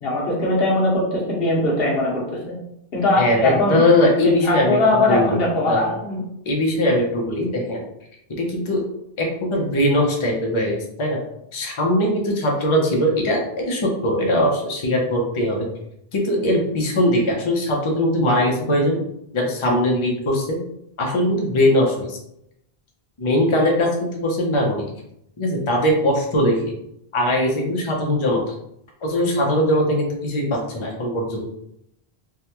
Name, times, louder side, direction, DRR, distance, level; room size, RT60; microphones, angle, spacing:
voice 1, 0.0-2.5 2.9-3.8 4.2-6.2, left 2 dB, 70° left, -3 dB, 1.1 m, -20 dB
voice 2, 3.2-5.4 5.7-5.8 6.5-7.8 8.4-8.8 9.2-11.2 11.5-15.7 16.1-19.0 19.3-20.6 21.0-22.2 23.2-24.9 25.4-26.7 27.1-28.5 29.0-31.5, left 1 dB, 35° left, -1 dB, 0.6 m, -20 dB
3.4 x 2.2 x 2.9 m, 0.78 s
omnidirectional pair, 1.0 m